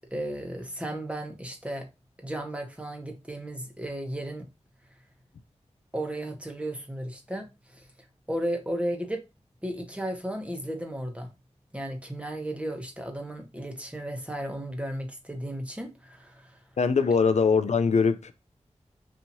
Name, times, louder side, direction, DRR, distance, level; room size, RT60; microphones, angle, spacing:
voice 1, 0.1-1.9 2.2-4.5 5.9-7.9 8.3-9.2 9.6-11.3 11.7-16.6, right 1 dB, 10° right, 1.1 m, -34 dB
voice 2, 16.8-18.3, left 5 dB, 70° left, 0.5 m, -22 dB
4.3 x 2.8 x 2.7 m
cardioid pair, 55°, 12 cm